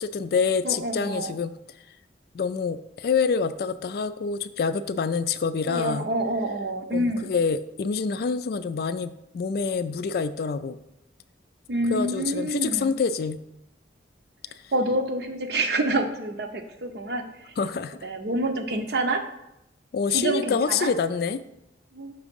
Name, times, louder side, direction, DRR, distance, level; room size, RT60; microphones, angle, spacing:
voice 1, 0.0-1.5 2.3-6.1 6.9-10.8 11.9-13.4 17.6-18.1 19.9-21.4, left 5 dB, 55° left, 12 dB, 0.3 m, -26 dB
voice 2, 0.6-1.3 5.7-7.3 11.7-12.9 14.7-17.5 18.0-19.2 20.1-20.9 21.9-22.1, right 1 dB, 60° right, 6 dB, 0.7 m, -27 dB
6.0 x 3.6 x 5.2 m, 0.85 s
head